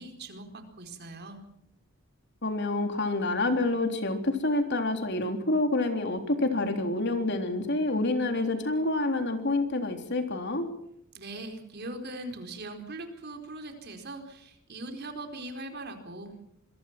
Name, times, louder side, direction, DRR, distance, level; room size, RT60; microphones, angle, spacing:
voice 1, 0.0-1.5 11.1-16.4, right 2 dB, 50° right, 5 dB, 4.5 m, -41 dB
voice 2, 2.4-10.7, left 2 dB, 55° left, 6 dB, 3.6 m, -28 dB
27.0 x 22.0 x 6.0 m, 0.74 s
head